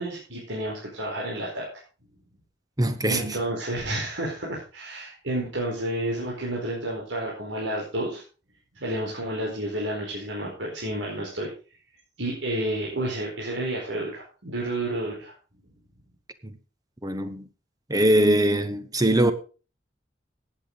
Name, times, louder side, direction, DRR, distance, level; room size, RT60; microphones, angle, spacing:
voice 1, 0.0-1.7 3.1-8.2 8.7-11.5 12.2-15.3, right 1 dB, 85° right, 4.8 m, -30 dB
voice 2, 2.8-3.4 16.4-16.6 17.0-17.4 17.9-19.3, right 1 dB, 20° right, 1.2 m, -22 dB
17.0 x 8.7 x 4.1 m
head